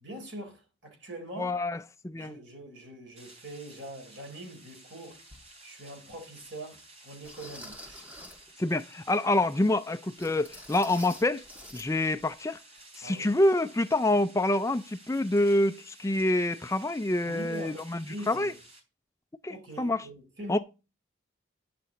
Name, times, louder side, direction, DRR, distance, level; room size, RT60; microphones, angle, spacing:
voice 1, 0.0-1.5 2.1-5.2 5.6-8.1 13.0-13.3 17.2-18.6 19.5-20.6, right 1 dB, 75° right, 4.3 m, -43 dB
voice 2, 1.4-2.4 8.6-11.4 11.7-12.6 13.0-18.5 19.4-20.1 20.5-20.6, left 1 dB, 15° left, 0.4 m, -27 dB
sound 1, 3.1-18.8, right 1 dB, 30° right, 3.7 m, -54 dB
sound 2, 5.3-5.4 6.1-6.2 7.2-8.5 10.2-11.9 12.2-12.3 12.8-12.9, left 1 dB, 10° right, 1.6 m, -47 dB
10.5 x 7.7 x 4.0 m
head